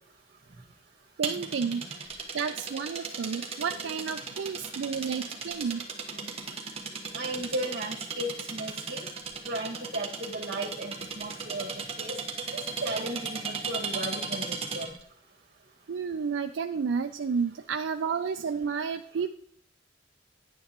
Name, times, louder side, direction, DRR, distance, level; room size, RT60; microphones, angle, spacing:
sound 1, 1.2-15.0, right 5 dB, 35° right, 1.2 m, -36 dB
voice 1, 1.2-2.1 2.3-5.8 6.4-6.6 15.9-19.3, right 6 dB, 85° right, 7 dB, 0.4 m, -31 dB
voice 2, 7.1-9.1 9.5-11.7 12.0-12.2 12.8-14.9, right 1 dB, 55° right, 1 dB, 1.9 m, -35 dB
10.5 x 9.3 x 3.0 m, 0.62 s
head